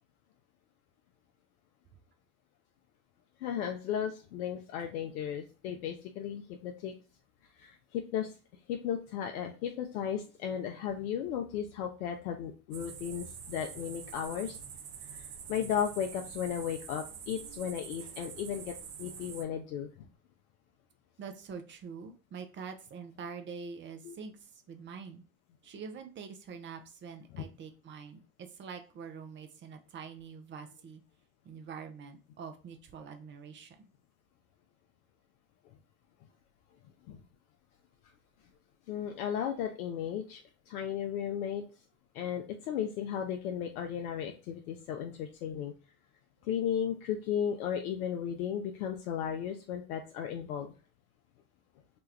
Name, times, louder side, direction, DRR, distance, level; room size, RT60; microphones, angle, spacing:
voice 1, 3.4-6.9 7.6-8.3 8.7-14.6 15.1-20.1 24.0-24.2 27.3-27.4 37.1-37.2 38.9-41.6 42.1-45.7 46.4-50.7, left 9 dB, 75° left, 3 dB, 0.6 m, -35 dB
sound 1, 12.7-19.4, right 7 dB, 70° right, 0.7 m, -46 dB
voice 2, 21.2-24.4 24.7-25.2 25.6-31.0 31.4-33.9, right 6 dB, 25° right, 7 dB, 0.6 m, -45 dB
2.9 x 2.3 x 3.2 m, 0.35 s
hypercardioid pair, 80°, 44 cm